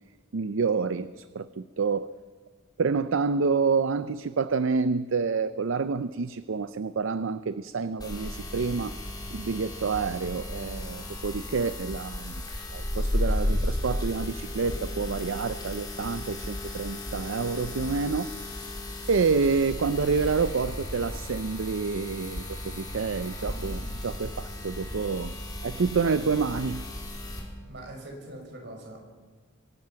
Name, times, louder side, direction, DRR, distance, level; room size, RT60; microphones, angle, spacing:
voice 1, 0.3-2.1 2.8-9.0 9.3-12.3 12.7-18.3 19.1-25.3 25.6-26.8, right 5 dB, 75° right, 13 dB, 0.5 m, -28 dB
sound 1, 8.0-27.4, left 1 dB, 20° left, 4.4 m, -34 dB
voice 2, 27.7-29.0, right 1 dB, 60° right, 1 dB, 6.3 m, -42 dB
25.0 x 18.0 x 5.8 m, 1.5 s
head